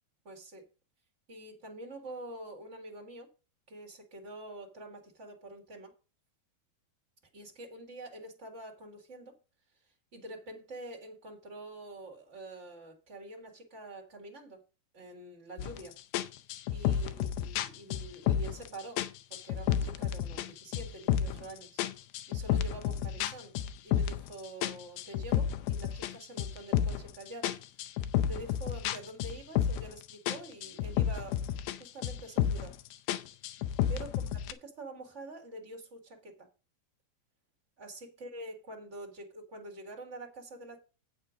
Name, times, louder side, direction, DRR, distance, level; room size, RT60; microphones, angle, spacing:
voice 1, 0.2-0.6 1.3-3.3 3.7-5.9 7.3-9.4 10.1-14.6 14.9-16.0 16.7-19.0 19.3-21.8 22.3-23.5 23.8-27.6 28.3-31.5 31.8-32.7 33.9-34.3 34.6-36.5 37.8-40.8, right 1 dB, 40° right, 1.0 m, -46 dB
sound 1, 15.6-15.8 16.1-18.7 19.0-20.5 20.7-21.5 21.8-24.3 24.6-27.1 27.4-30.0 30.3-31.8 32.0-32.7 33.1-34.5, left 10 dB, 80° left, 2.4 m, -31 dB
8.4 x 6.7 x 5.1 m
omnidirectional pair, 4.6 m